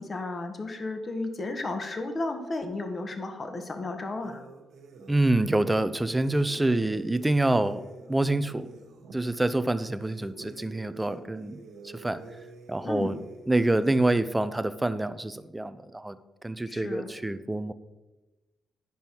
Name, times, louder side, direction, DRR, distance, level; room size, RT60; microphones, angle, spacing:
voice 1, 0.0-4.4 12.8-13.2 16.7-17.1, left 2 dB, 35° left, 6 dB, 1.2 m, -33 dB
sound 1, 4.2-5.2 6.2-9.2 10.0-13.7, right 4 dB, 80° right, 1.5 m, -47 dB
voice 2, 5.1-7.8 8.1-8.7 9.1-11.6 11.9-12.2 12.7-13.2 13.5-17.7, right 2 dB, 10° right, 13 dB, 0.5 m, -26 dB
11.0 x 5.4 x 4.5 m, 1.1 s
cardioid pair, 90°, 0 cm